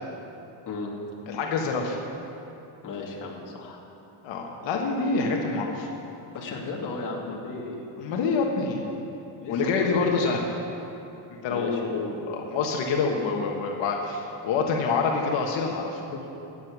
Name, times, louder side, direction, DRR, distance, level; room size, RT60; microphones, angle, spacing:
voice 1, 1.3-2.0 4.2-5.9 8.0-8.9 9.5-10.4 11.4-12.0 12.3-16.0, left 4 dB, 85° left, 0 dB, 1.5 m, -26 dB
voice 2, 2.8-3.8 6.3-7.9 9.4-10.2 11.5-12.1 16.1-16.3, left 3 dB, 45° left, -1 dB, 2.2 m, -35 dB
16.0 x 9.1 x 6.1 m, 2.9 s
cardioid pair, 160°, 43 cm